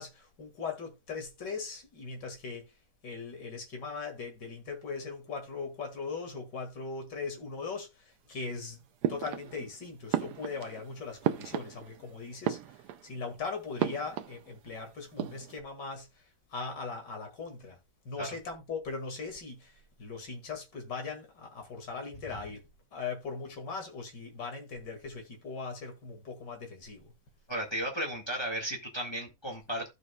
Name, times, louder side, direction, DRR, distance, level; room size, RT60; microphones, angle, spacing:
voice 1, 0.0-2.7 3.0-8.8 9.1-16.2 16.5-17.8 18.0-22.6 22.9-27.1, left 4 dB, 75° left, 2.7 m, -39 dB
sound 1, 9.0-9.7 10.1-12.1 12.3-13.2 13.8-14.8 15.0-15.6, right 11 dB, 70° right, 1.2 m, -34 dB
voice 2, 27.5-29.9, right 1 dB, 15° left, 1.9 m, -34 dB
15.5 x 5.2 x 2.3 m
omnidirectional pair, 1.9 m